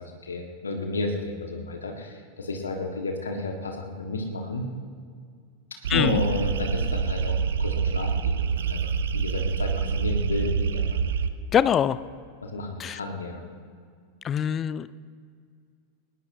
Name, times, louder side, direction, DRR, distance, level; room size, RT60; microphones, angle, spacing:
voice 1, 0.0-4.7 5.9-8.8 9.1-11.0 12.4-13.4, left 2 dB, 75° left, 2 dB, 1.7 m, -31 dB
sound 1, 5.8-11.3, right 6 dB, 60° right, 0.8 m, -26 dB
voice 2, 5.9-6.2 11.5-12.0 12.8-13.0 14.2-14.9, left 9 dB, 25° left, 16 dB, 0.5 m, -23 dB
20.5 x 19.5 x 2.8 m, 2.1 s
figure-of-eight pair, 90°, 0 cm